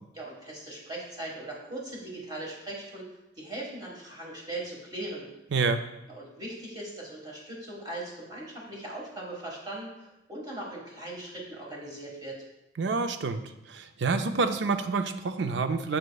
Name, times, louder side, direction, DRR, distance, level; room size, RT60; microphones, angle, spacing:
voice 1, 0.1-3.1 3.4-5.3 6.1-12.3, right 1 dB, 20° right, -3 dB, 1.5 m, -39 dB
voice 2, 5.5-5.8 12.8-13.4 13.7-16.0, right 4 dB, 65° right, 8 dB, 0.4 m, -27 dB
7.0 x 6.3 x 2.3 m, 0.90 s
head